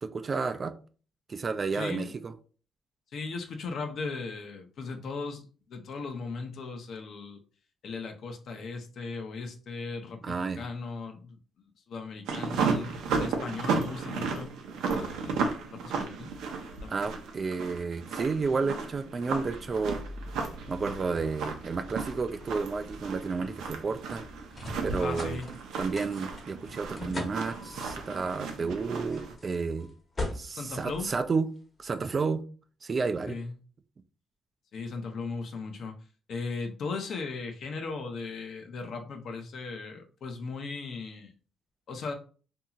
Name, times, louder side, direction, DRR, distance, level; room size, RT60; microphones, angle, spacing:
voice 1, 0.0-0.7 1.3-2.3 10.2-10.6 16.9-20.0 20.7-24.2 24.8-25.4 25.8-29.9 30.3-31.5 31.8-32.4 32.8-33.4, right 4 dB, 35° right, 0.3 m, -31 dB
voice 2, 1.7-2.2 3.1-7.4 7.8-14.5 14.8-16.3 16.8-17.1 25.0-25.5 30.6-31.1 33.3-33.5 34.7-35.9 36.3-41.3 41.9-42.1, left 4 dB, 65° left, 0.6 m, -37 dB
sound 1, 12.3-29.3, right 5 dB, 85° right, 0.5 m, -34 dB
sound 2, 19.5-31.8, left 1 dB, 30° left, 0.9 m, -43 dB
2.8 x 2.7 x 2.4 m
cardioid pair, 90°, 0 cm